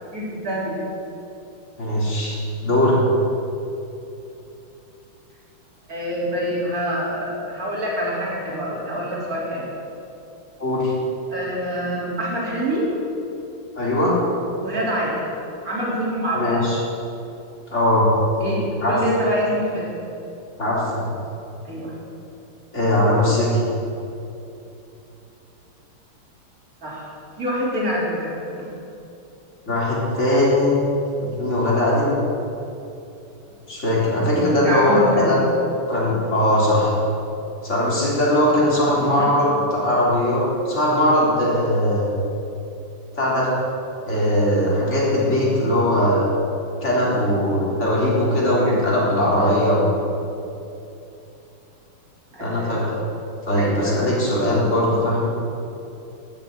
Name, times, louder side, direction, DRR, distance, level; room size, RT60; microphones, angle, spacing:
voice 1, 0.1-0.8 5.9-9.7 11.3-12.9 14.6-15.3 15.6-16.6 18.4-19.9 21.6-21.9 26.8-27.1 27.4-28.3 28.6-28.7 34.6-35.4 38.8-39.3 48.6-48.7 49.4-49.7 52.3-52.7 53.5-54.0, equal, 40° right, -6 dB, 4.3 m, -26 dB
voice 2, 1.8-3.0 10.6-10.9 13.8-14.2 16.3-16.8 17.7-18.1 18.8-19.0 20.6-21.1 22.7-23.6 29.7-30.7 31.2-32.2 33.7-35.4 35.9-37.0 37.6-42.1 43.2-43.5 44.1-46.3 46.8-49.9 52.4-53.0 53.5-55.3, left 1 dB, 30° left, -6 dB, 3.9 m, -20 dB
12.5 x 8.3 x 9.1 m, 2.8 s
omnidirectional pair, 2.4 m